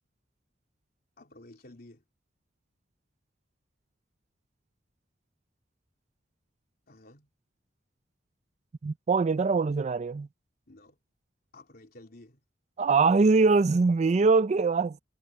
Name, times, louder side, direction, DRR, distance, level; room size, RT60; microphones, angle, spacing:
voice 1, 1.2-2.0 6.9-7.3 10.7-11.0 11.5-12.4, left 1 dB, 55° left, 3.3 m, -52 dB
voice 2, 8.8-10.3 12.8-15.0, right 4 dB, 40° right, 0.4 m, -23 dB
head